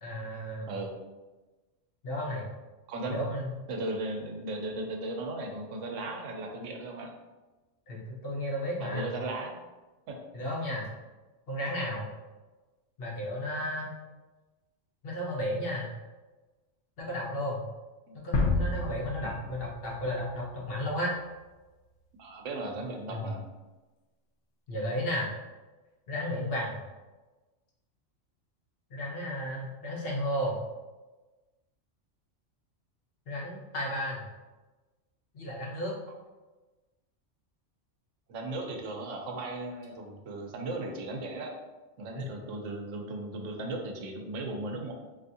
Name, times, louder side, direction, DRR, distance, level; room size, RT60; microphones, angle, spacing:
voice 1, 0.0-0.7 2.0-2.4 3.0-3.5 7.9-9.2 10.3-10.9 11.5-12.1 13.0-13.9 15.0-15.9 17.0-17.6 18.2-21.1 23.1-23.3 24.7-25.3 26.1-26.8 28.9-30.6 33.3-34.2 35.3-35.9, equal, 55° left, -4 dB, 1.0 m, -33 dB
voice 2, 2.9-3.2 3.7-7.1 8.8-9.6 10.1-10.2 18.1-18.2 19.2-19.5 22.2-23.4 38.3-41.5 42.0-44.9, right 2 dB, 80° right, 2 dB, 1.0 m, -36 dB
sound 1, 18.3-21.2, left 2 dB, 85° left, 1.0 m, -31 dB
3.4 x 2.7 x 2.6 m, 1.2 s
omnidirectional pair, 1.3 m